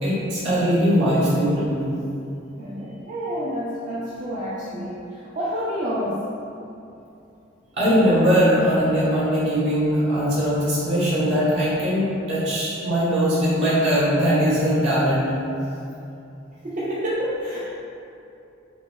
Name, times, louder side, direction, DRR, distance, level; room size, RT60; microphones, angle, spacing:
voice 1, 0.0-1.9 7.8-15.3, equal, 65° right, -9 dB, 1.2 m, -20 dB
voice 2, 2.6-6.2 16.6-17.6, equal, 35° right, -8 dB, 0.4 m, -29 dB
4.9 x 2.7 x 2.3 m, 2.7 s
head